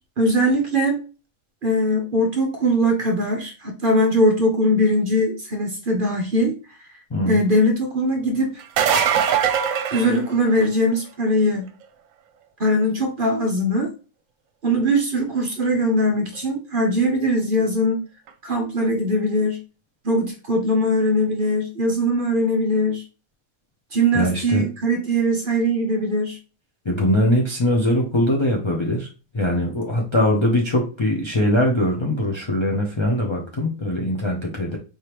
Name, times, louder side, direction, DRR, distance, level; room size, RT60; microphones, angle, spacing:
voice 1, 0.2-1.0 1.6-6.5 7.3-8.6 9.9-11.7 12.6-13.9 14.6-18.0 18.4-19.6 20.0-23.0 23.9-26.4, equal, 45° right, 4 dB, 0.8 m, -21 dB
sound 1, 8.6-10.8 16.3-16.4 18.3-18.4, right 8 dB, 75° right, 1.0 m, -21 dB
voice 2, 24.1-24.7 26.8-29.1 29.3-34.8, left 1 dB, 30° left, -1 dB, 0.6 m, -21 dB
4.8 x 3.4 x 2.9 m, 0.34 s
omnidirectional pair, 1.5 m